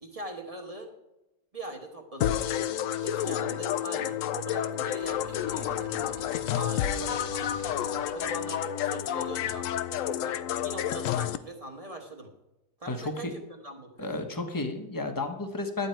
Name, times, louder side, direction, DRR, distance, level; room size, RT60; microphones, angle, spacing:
voice 1, 0.0-0.9 1.5-6.2 6.5-10.4 10.6-12.3 12.8-14.1, right 1 dB, 25° right, 3 dB, 1.1 m, -41 dB
sound 1, 2.2-11.4, left 11 dB, 70° left, 0.7 m, -30 dB
sound 2, 5.0-8.4, right 3 dB, 80° right, 1.4 m, -49 dB
voice 2, 12.9-13.3 14.0-15.9, left 2 dB, 15° left, 5 dB, 0.8 m, -32 dB
12.0 x 8.7 x 4.5 m, 0.95 s
omnidirectional pair, 1.8 m